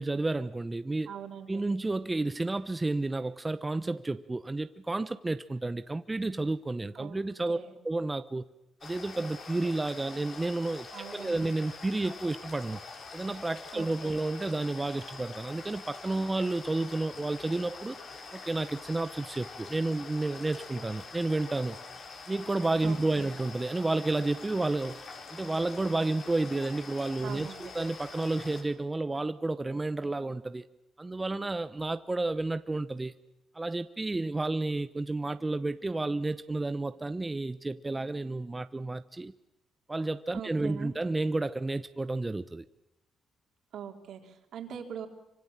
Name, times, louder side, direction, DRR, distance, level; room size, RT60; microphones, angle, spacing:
voice 1, 0.0-1.1 1.5-7.6 7.8-8.5 8.8-12.8 13.1-18.0 18.3-21.8 22.3-25.0 25.3-30.7 31.0-33.1 33.5-39.3 39.9-42.6, right 2 dB, 20° right, 0.9 m, -31 dB
voice 2, 1.1-1.6 7.0-7.2 7.5-7.7 10.9-11.4 13.7-14.1 22.8-23.2 27.2-27.7 40.3-40.9 43.7-45.1, right 8 dB, 70° right, 3.9 m, -42 dB
sound 1, 8.8-28.6, left 4 dB, 55° left, 4.9 m, -45 dB
25.5 x 25.5 x 7.5 m
cardioid pair, 90°, 0 cm